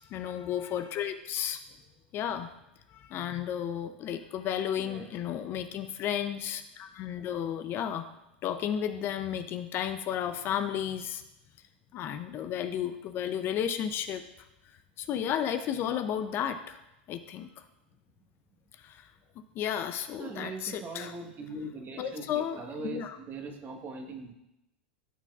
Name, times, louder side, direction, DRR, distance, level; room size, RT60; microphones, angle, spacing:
voice 1, 0.1-1.6 2.1-2.5 2.9-8.1 8.4-11.2 11.9-14.2 15.0-16.8 17.1-17.6 18.8-19.1 19.5-21.2 22.0-23.2, left 9 dB, 40° left, 9 dB, 0.5 m, -33 dB
voice 2, 4.8-5.1 20.2-24.3, right 3 dB, 35° right, 4 dB, 1.2 m, -41 dB
12.5 x 4.5 x 2.4 m, 0.89 s
hypercardioid pair, 105°, 6 cm